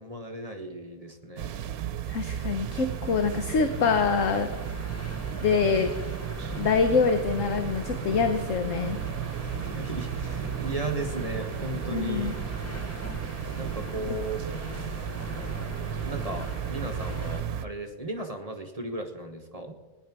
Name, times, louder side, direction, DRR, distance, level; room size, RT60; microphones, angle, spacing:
voice 1, 0.0-1.5 9.6-12.3 13.5-14.4 16.0-19.8, right 2 dB, 25° right, 3 dB, 1.3 m, -36 dB
sound 1, 1.4-17.6, right 10 dB, 80° right, 1.2 m, -35 dB
voice 2, 2.1-4.7 5.4-5.9 6.6-9.0 11.9-12.4, left 5 dB, 60° left, 7 dB, 1.3 m, -25 dB
sound 2, 2.4-17.4, equal, 15° left, 0.6 m, -39 dB
18.5 x 10.5 x 6.1 m, 1.2 s
omnidirectional pair, 1.6 m